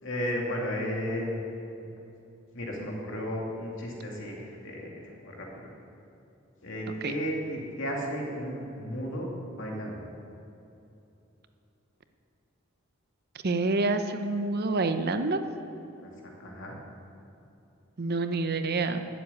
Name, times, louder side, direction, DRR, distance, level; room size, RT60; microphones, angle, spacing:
voice 1, 0.0-1.4 2.5-5.8 6.6-10.1 16.0-16.1 16.4-16.8, equal, 65° left, -1 dB, 2.6 m, -34 dB
voice 2, 13.4-15.4 18.0-19.1, right 3 dB, 50° right, 9 dB, 0.7 m, -27 dB
11.5 x 7.6 x 9.4 m, 2.8 s
head